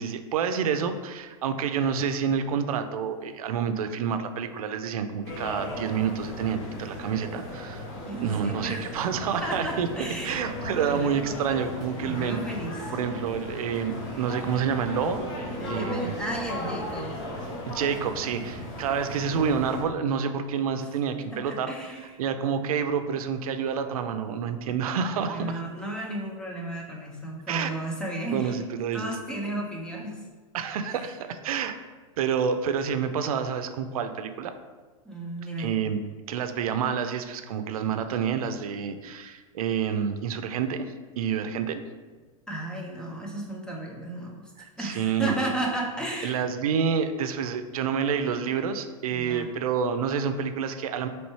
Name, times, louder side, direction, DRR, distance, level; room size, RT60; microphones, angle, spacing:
voice 1, 0.0-7.8 8.2-9.9 10.2-12.4 12.9-15.3 15.7-16.1 17.7-21.7 22.2-25.6 27.5-27.7 28.3-29.1 29.6-29.7 30.5-31.7 32.2-34.5 35.6-36.0 36.3-41.8 44.6-45.4 46.2-51.1, right 7 dB, 85° right, 8 dB, 0.4 m, -28 dB
sound 1, 5.2-19.8, left 1 dB, 40° left, 1.0 m, -36 dB
voice 2, 8.1-8.8 9.4-10.4 10.7-11.1 12.0-12.9 15.6-17.3 21.3-22.1 25.3-28.6 28.9-30.2 30.9-31.1 35.0-35.7 42.5-46.5 49.1-49.5, right 1 dB, 5° left, -1 dB, 0.4 m, -34 dB
4.2 x 3.2 x 3.1 m, 1.4 s
supercardioid pair, 150°, 18 cm